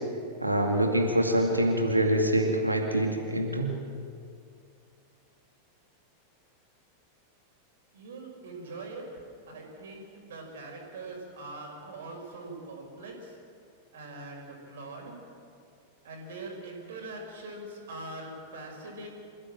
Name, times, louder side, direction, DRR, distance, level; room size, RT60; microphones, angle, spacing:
voice 1, 0.4-3.8, right 1 dB, 85° right, 2 dB, 2.3 m, -25 dB
voice 2, 7.9-9.0 9.5-13.2 13.9-15.1 16.0-19.1, right 2 dB, 60° right, 1 dB, 5.3 m, -42 dB
27.5 x 15.0 x 7.5 m, 2.4 s
figure-of-eight pair, 90°, 0 cm